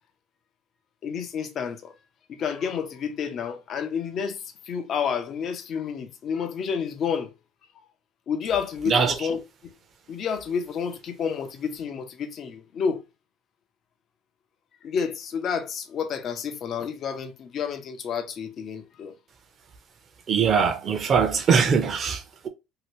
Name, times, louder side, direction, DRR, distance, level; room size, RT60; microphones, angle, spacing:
voice 1, 1.0-1.9 2.3-7.3 8.3-9.7 10.1-13.0 14.8-19.1, left 6 dB, 45° left, 0.6 m, -30 dB
voice 2, 20.3-22.5, right 6 dB, 35° right, 0.7 m, -22 dB
2.8 x 2.6 x 3.1 m
cardioid pair, 125°, 0 cm